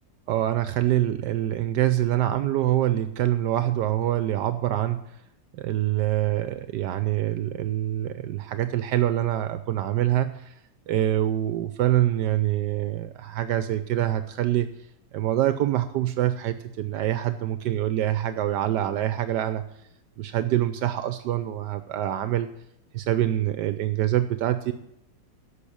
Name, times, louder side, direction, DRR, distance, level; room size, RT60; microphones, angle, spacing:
voice 1, 0.3-5.0 5.5-10.5 10.9-14.7 15.1-19.6 20.2-22.5 22.9-24.7, right 13 dB, 80° right, 11 dB, 1.2 m, -25 dB
11.5 x 7.1 x 8.6 m, 0.81 s
omnidirectional pair, 1.9 m